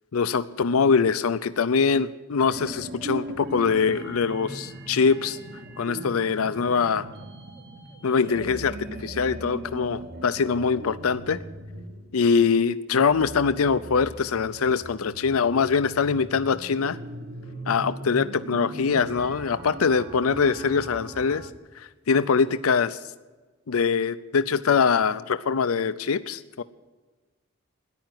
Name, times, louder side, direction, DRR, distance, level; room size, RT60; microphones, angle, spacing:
voice 1, 0.1-5.4 5.8-7.1 8.0-11.4 12.1-17.0 17.7-21.5 21.8-23.0 23.7-26.6, left 5 dB, 85° left, 13 dB, 0.6 m, -23 dB
sound 1, 2.5-21.5, right 1 dB, 50° right, 1.3 m, -39 dB
13.5 x 10.5 x 9.4 m, 1.3 s
head